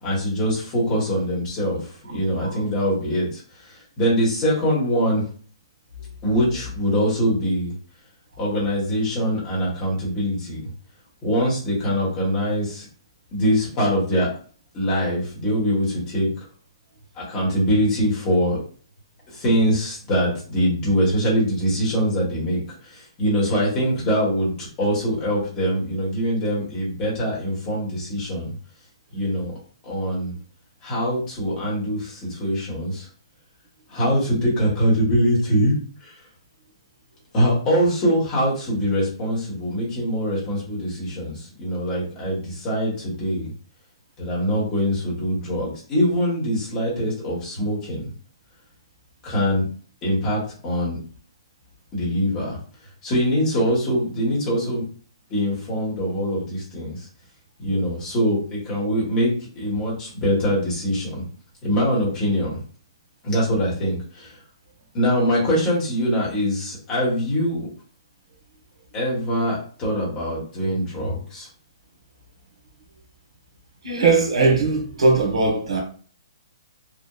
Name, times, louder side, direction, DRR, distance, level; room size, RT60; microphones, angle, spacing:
voice 1, 0.0-5.2 6.2-7.7 8.4-10.6 11.2-12.9 13.3-14.3 14.7-16.5 17.1-18.6 19.3-28.5 29.1-29.5 29.8-30.3 30.8-33.1 33.9-35.7 36.0-36.1 37.3-43.5 44.2-48.1 49.2-49.7 50.0-51.0 51.9-52.6 53.0-54.8 55.3-57.1 57.6-61.2 61.6-62.6 63.2-64.4 64.9-67.7 68.9-71.5, equal, 15° left, 1.0 m, -23 dB
voice 2, 73.8-75.8, right 3 dB, 90° right, 1.0 m, -19 dB
2.9 x 2.0 x 2.3 m
hypercardioid pair, 175°, 3 cm